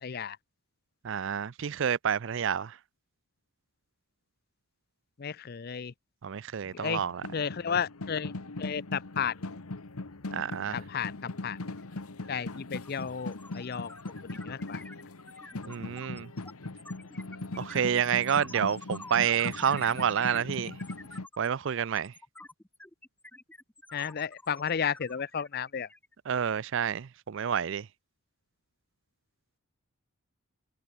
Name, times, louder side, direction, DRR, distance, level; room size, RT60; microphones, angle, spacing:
voice 1, 0.0-0.4 5.2-5.9 6.7-7.0 7.3-8.3 8.6-9.3 10.7-11.1 11.4-11.6 12.3-13.9 14.5-14.8 23.9-25.9, left 7 dB, 45° left, 0.5 m, -33 dB
voice 2, 1.0-2.8 6.2-7.2 10.3-10.8 15.7-16.3 17.6-20.8 21.4-22.1 26.3-27.9, right 8 dB, 55° right, 0.4 m, -29 dB
sound 1, 6.7-21.3, left 2 dB, 85° left, 1.3 m, -40 dB
sound 2, 11.8-11.9 12.2-26.6, left 2 dB, 5° left, 0.8 m, -48 dB
head